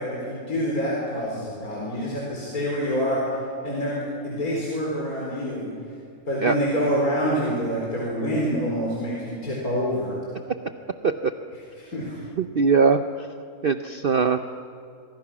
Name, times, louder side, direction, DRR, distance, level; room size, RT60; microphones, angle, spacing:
voice 1, 0.0-3.4 3.6-3.9 4.2-5.7 6.3-10.1 11.9-12.2, equal, 70° left, -4 dB, 4.8 m, -26 dB
voice 2, 12.4-13.3 13.6-14.4, right 5 dB, 50° right, 8 dB, 0.7 m, -21 dB
26.5 x 23.5 x 6.1 m, 2.5 s
omnidirectional pair, 1.6 m